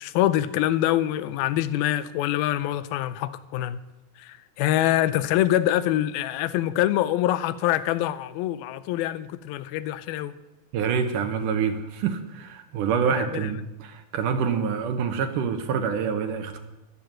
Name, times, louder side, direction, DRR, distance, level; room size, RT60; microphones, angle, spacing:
voice 1, 0.0-3.8 4.2-10.3 13.2-13.5, left 13 dB, 90° left, 2.5 m, -25 dB
voice 2, 10.7-16.6, right 6 dB, 70° right, 2.4 m, -26 dB
12.5 x 11.5 x 7.5 m
omnidirectional pair, 4.2 m